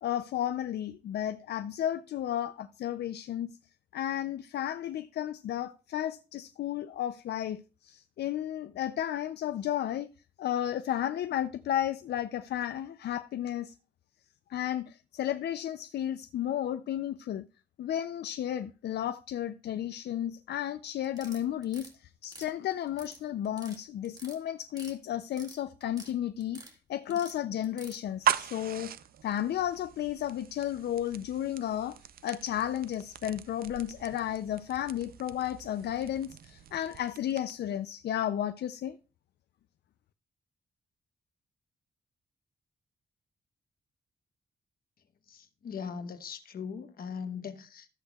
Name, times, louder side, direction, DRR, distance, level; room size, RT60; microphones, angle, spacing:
voice 1, 0.0-3.5 3.9-10.1 10.4-13.7 14.5-17.5 17.8-26.6 26.9-28.9 29.2-32.0 32.2-39.0, left 11 dB, 75° left, 0.5 m, -33 dB
sound 1, 21.0-21.9 22.2-23.2 23.4-23.8 24.0-24.9 25.2-26.1 26.4-26.7 27.1-28.0, right 2 dB, 20° right, 1.9 m, -49 dB
sound 2, 28.0-37.7, right 10 dB, 60° right, 0.5 m, -38 dB
voice 2, 45.3-47.9, left 6 dB, 60° left, 1.0 m, -40 dB
13.5 x 8.0 x 2.3 m
wide cardioid pair, 140°, 17 cm